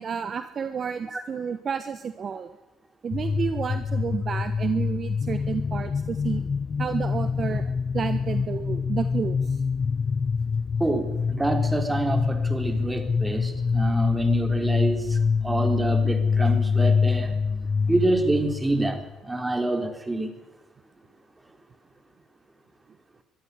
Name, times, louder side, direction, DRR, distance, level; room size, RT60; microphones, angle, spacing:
voice 1, 0.0-2.5 3.0-6.4 6.8-9.6, right 6 dB, 45° right, 11 dB, 1.1 m, -31 dB
sound 1, 3.1-19.0, left 5 dB, 40° left, 0.6 m, -25 dB
voice 2, 10.8-15.2 15.4-17.4 17.9-20.3, right 2 dB, 15° right, 7 dB, 4.0 m, -27 dB
22.0 x 13.0 x 9.8 m, 1.1 s
hypercardioid pair, 55°, 0 cm